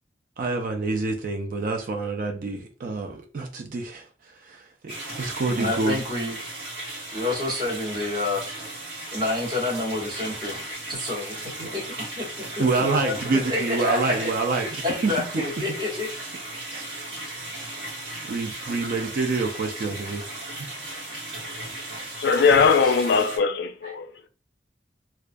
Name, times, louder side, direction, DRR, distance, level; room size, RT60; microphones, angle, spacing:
voice 1, 0.4-6.0 12.6-15.1 16.7-17.0 18.3-20.3, right 3 dB, 50° right, 0.4 m, -27 dB
sound 1, 4.9-23.4, right 1 dB, 85° right, 1.0 m, -36 dB
voice 2, 5.5-6.3 7.1-8.5 9.1-10.6 10.9-12.3 12.6-14.3 14.8-16.1, left 2 dB, 25° right, 1.1 m, -28 dB
voice 3, 22.2-24.3, left 5 dB, 65° left, 0.3 m, -20 dB
2.3 x 2.3 x 2.5 m
head